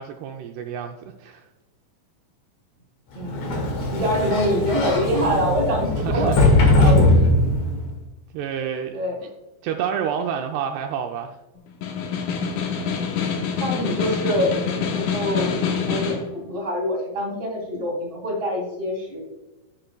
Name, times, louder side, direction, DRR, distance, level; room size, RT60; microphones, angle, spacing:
voice 1, 0.0-1.4 6.0-7.1 8.3-9.0 9.6-11.4, right 8 dB, 90° right, 4 dB, 2.4 m, -29 dB
voice 2, 3.1-3.5 3.9-6.3 6.8-7.1 8.9-9.2 13.6-19.2, equal, 20° right, -2 dB, 1.8 m, -25 dB
Sliding door, 3.2-7.9, left 2 dB, 55° left, 2.4 m, -20 dB
Snare drum, 11.7-16.3, left 6 dB, 85° left, 3.7 m, -26 dB
9.8 x 9.1 x 2.3 m, 1.0 s
omnidirectional pair, 5.3 m